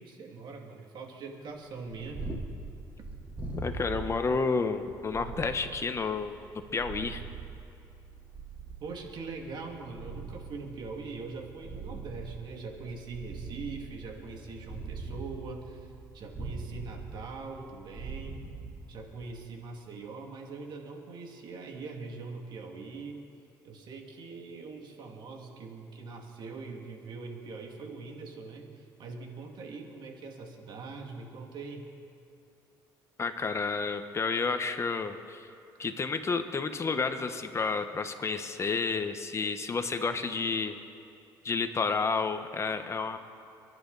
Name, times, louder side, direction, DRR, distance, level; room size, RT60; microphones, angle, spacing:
voice 1, 0.0-2.2 8.8-15.9 16.1-18.4 18.9-23.2 23.6-31.9, right 4 dB, 60° right, 2 dB, 2.5 m, -42 dB
Purr, 1.7-19.4, right 3 dB, 15° right, 3.5 m, -42 dB
voice 2, 3.6-6.4 6.7-7.2 33.2-35.5 35.8-40.7 41.4-43.2, left 4 dB, 35° left, 8 dB, 1.2 m, -30 dB
30.0 x 10.5 x 4.1 m, 2.7 s
cardioid pair, 85°, 9 cm